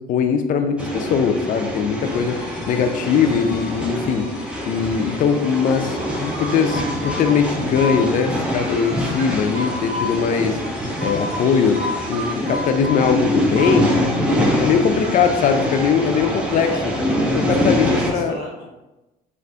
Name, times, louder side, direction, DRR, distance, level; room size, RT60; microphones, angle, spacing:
voice 1, 0.1-10.6 11.0-11.8 12.1-14.0 14.4-16.7 17.5-18.4, left 6 dB, 50° left, 6 dB, 0.4 m, -20 dB
sound 1, 0.8-18.1, equal, 5° right, 0.6 m, -25 dB
sound 2, 2.0-12.8, left 2 dB, 70° left, 0.8 m, -39 dB
sound 3, 6.0-8.5 8.8-11.3 11.7-14.3 14.6-17.3, left 1 dB, 70° right, 1.4 m, -32 dB
voice 2, 16.5-16.9 17.3-18.6, equal, 40° right, -4 dB, 1.1 m, -35 dB
2.5 x 2.4 x 3.3 m, 1.0 s
cardioid pair, 110°, 17 cm